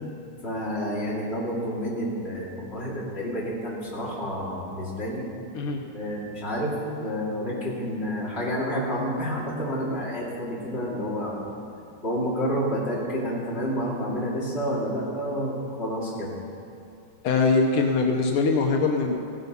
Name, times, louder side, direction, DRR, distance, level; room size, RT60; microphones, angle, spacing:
voice 1, 0.4-5.2 5.9-6.7 7.0-11.4 12.0-16.3, equal, 30° left, -5 dB, 2.8 m, -29 dB
voice 2, 17.2-19.1, left 4 dB, 80° left, 2 dB, 1.8 m, -22 dB
16.0 x 9.6 x 5.4 m, 2.5 s
omnidirectional pair, 2.4 m